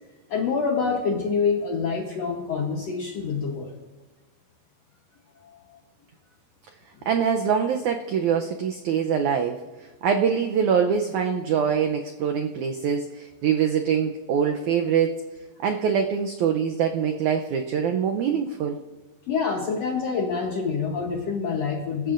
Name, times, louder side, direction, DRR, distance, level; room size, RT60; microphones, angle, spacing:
voice 1, 0.3-3.7 5.5-5.8 19.3-22.1, left 5 dB, 70° left, 1 dB, 1.5 m, -26 dB
voice 2, 7.1-9.6 10.0-15.2 15.6-18.8, right 7 dB, 90° right, 4 dB, 1.6 m, -24 dB
23.0 x 13.0 x 2.6 m, 1.2 s
omnidirectional pair, 4.4 m